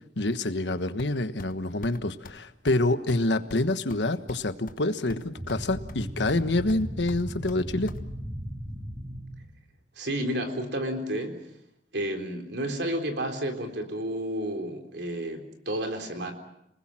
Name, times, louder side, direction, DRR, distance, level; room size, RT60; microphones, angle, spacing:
voice 1, 0.2-7.9, left 2 dB, 85° left, 11 dB, 1.3 m, -27 dB
sound 1, 1.0-1.5 1.8-2.0 2.2-2.4 2.7-2.8 3.1-3.2 3.5-4.8 5.1-5.6 5.9-6.4 6.7-8.0, left 2 dB, 55° left, 1.2 m, -43 dB
sound 2, 5.4-9.6, equal, 25° right, 6.4 m, -37 dB
voice 2, 10.0-11.4 11.9-16.3, right 1 dB, 70° right, 5 dB, 3.8 m, -31 dB
28.5 x 20.5 x 7.5 m, 0.82 s
head